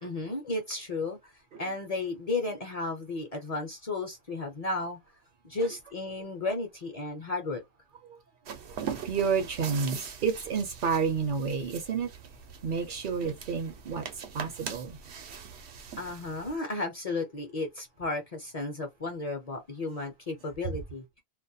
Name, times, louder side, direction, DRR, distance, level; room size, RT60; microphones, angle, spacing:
voice 1, 0.0-1.2 1.6-5.0 5.4-7.6 16.0-21.0, left 3 dB, 45° left, 0.5 m, -33 dB
sound 1, 8.5-16.6, right 7 dB, 85° right, 0.9 m, -42 dB
voice 2, 9.0-12.1 12.6-14.0 14.3-15.0 20.7-20.8, right 5 dB, 60° right, 0.6 m, -30 dB
2.3 x 2.1 x 2.6 m
omnidirectional pair, 1.1 m